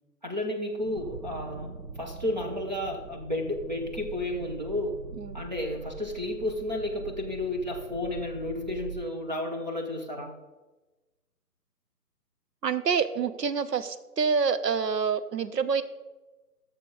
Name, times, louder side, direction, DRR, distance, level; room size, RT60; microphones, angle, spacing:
voice 1, 0.2-5.0 5.3-10.3, left 1 dB, 30° right, 1 dB, 0.7 m, -32 dB
sound 1, 0.8-9.1, right 5 dB, 70° right, 1.3 m, -43 dB
voice 2, 12.6-15.8, right 6 dB, 90° right, 13 dB, 0.8 m, -27 dB
10.5 x 6.5 x 3.9 m, 1.2 s
figure-of-eight pair, 165°, 48 cm